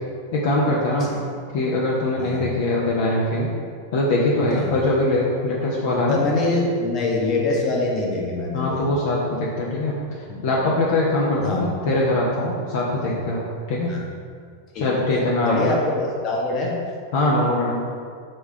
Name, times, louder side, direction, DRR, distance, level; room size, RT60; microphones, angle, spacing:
voice 1, 0.3-1.1 1.5-3.5 3.9-6.3 8.5-9.9 10.4-13.9 14.7-15.7 17.1-17.8, left 2 dB, 55° left, -5 dB, 0.9 m, -22 dB
voice 2, 6.1-8.8 10.3-10.4 11.4-11.7 12.9-13.1 13.9-14.0 14.7-16.8, left 2 dB, 35° left, -2 dB, 1.2 m, -25 dB
5.5 x 3.5 x 5.6 m, 2.1 s
figure-of-eight pair, 90°, 0 cm